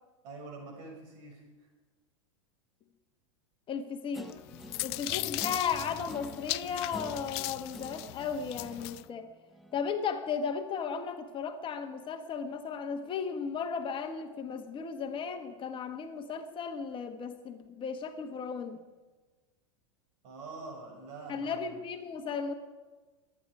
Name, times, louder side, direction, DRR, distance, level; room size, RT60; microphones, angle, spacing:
voice 1, 0.2-1.4 20.2-21.6, right 3 dB, 60° right, 1 dB, 6.1 m, -45 dB
voice 2, 3.7-4.3 4.8-9.3 9.7-18.8 21.3-22.5, left 6 dB, 30° left, 6 dB, 1.4 m, -35 dB
Guitar, 4.1-10.0, left 1 dB, ahead, 1.0 m, -47 dB
sound 1, 4.3-9.0, left 21 dB, 55° left, 0.4 m, -38 dB
23.5 x 10.0 x 4.9 m, 1.3 s
hypercardioid pair, 100°, 16 cm